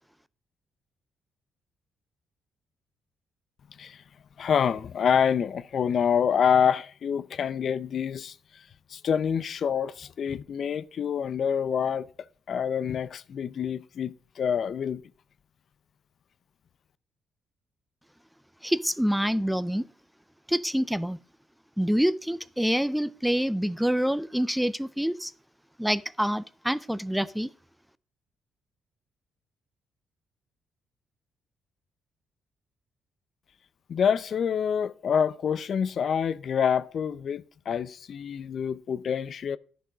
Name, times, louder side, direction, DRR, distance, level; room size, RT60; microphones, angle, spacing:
voice 1, 4.4-8.3 8.9-15.0 33.9-39.6, left 7 dB, 55° left, 0.5 m, -27 dB
voice 2, 18.6-19.9 20.5-21.2 21.8-25.3 25.8-27.5, equal, ahead, 0.4 m, -26 dB
10.5 x 6.2 x 4.9 m
cardioid pair, 90°, 0 cm